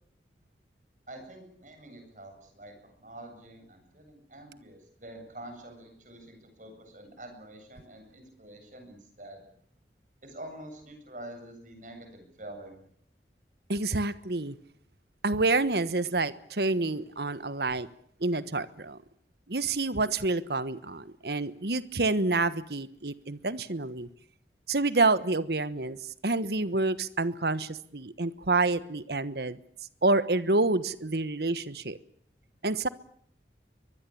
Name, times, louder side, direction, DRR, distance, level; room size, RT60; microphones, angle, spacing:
voice 1, 1.1-9.4 10.2-12.8, right 1 dB, 45° right, 6 dB, 7.8 m, -46 dB
voice 2, 13.7-14.6 15.2-17.9 18.2-19.0 19.5-24.1 24.7-29.6 30.0-32.0 32.6-32.9, right 3 dB, 65° right, 15 dB, 1.3 m, -28 dB
24.0 x 21.0 x 8.7 m, 0.64 s
head